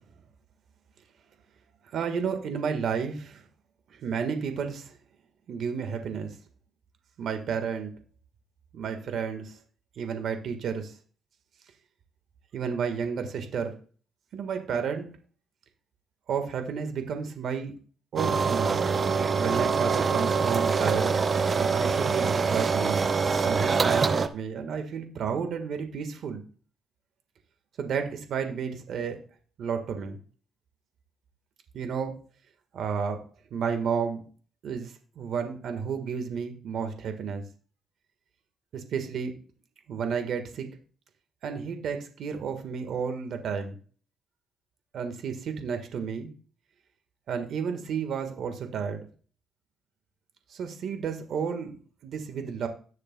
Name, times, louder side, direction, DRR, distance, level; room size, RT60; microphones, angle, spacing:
voice 1, 1.9-3.4 3.9-5.0 5.5-6.4 7.2-7.9 8.7-9.6 10.0-10.9 12.5-13.8 14.3-15.1 16.3-17.7 18.1-18.8 19.4-21.1 21.5-23.0 23.4-26.4 27.8-29.2 29.6-30.2 31.7-32.2 32.7-33.2 33.5-34.2 34.6-37.4 38.7-39.3 39.9-40.7 41.4-43.8 44.9-46.3 47.3-49.1 50.5-51.8 52.0-52.7, right 6 dB, 70° right, 6 dB, 1.4 m, -31 dB
sound 1, 18.2-24.3, right 5 dB, 40° right, 0.6 m, -25 dB
17.5 x 6.6 x 2.2 m, 0.39 s
cardioid pair, 90°, 0 cm